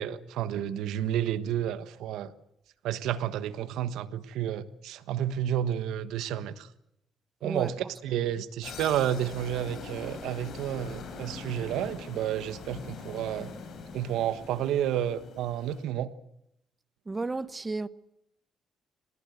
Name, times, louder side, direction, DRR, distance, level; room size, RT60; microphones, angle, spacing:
voice 1, 0.0-2.3 2.8-6.7 7.4-13.5 13.9-16.1, right 10 dB, 90° right, 1.3 m, -31 dB
voice 2, 7.4-7.9 17.1-17.9, right 3 dB, 25° right, 1.1 m, -33 dB
sound 1, 8.6-15.8, left 4 dB, 65° left, 6.5 m, -42 dB
25.5 x 19.5 x 8.2 m
cardioid pair, 90°, 0 cm